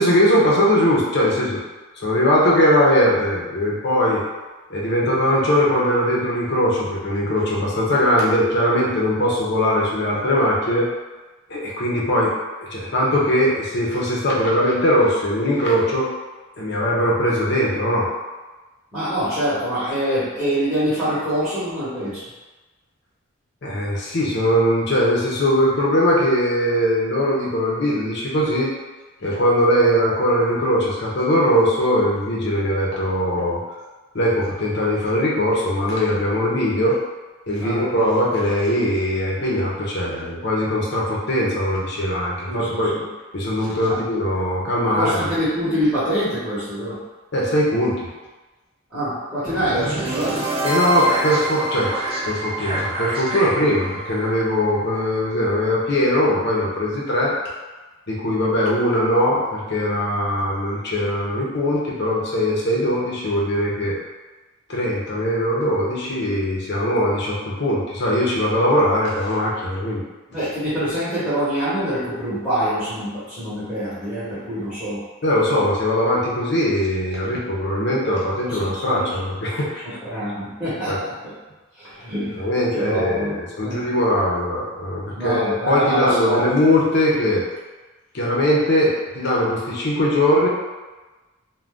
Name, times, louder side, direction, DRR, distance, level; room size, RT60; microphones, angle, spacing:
voice 1, 0.0-1.6 2.0-4.2 4.7-10.9 11.5-16.1 16.6-18.1 23.6-28.7 29.2-33.6 34.1-37.0 37.5-42.9 43.3-45.2 47.3-48.1 50.6-51.9 52.3-57.3 58.1-64.0 64.7-70.0 75.2-79.8 80.9-81.0 82.3-87.4 88.1-90.5, equal, 50° left, -4 dB, 0.7 m, -20 dB
voice 2, 18.9-22.2 37.6-37.9 42.4-43.0 43.9-44.0 44.9-47.0 48.9-50.4 70.3-75.0 78.4-79.1 80.0-81.3 81.8-83.3 83.6-83.8 85.1-86.5, equal, 5° left, -14 dB, 1.0 m, -25 dB
sound 1, 49.5-55.5, right 1 dB, 25° right, 0.4 m, -27 dB
2.5 x 2.2 x 3.4 m, 1.2 s
head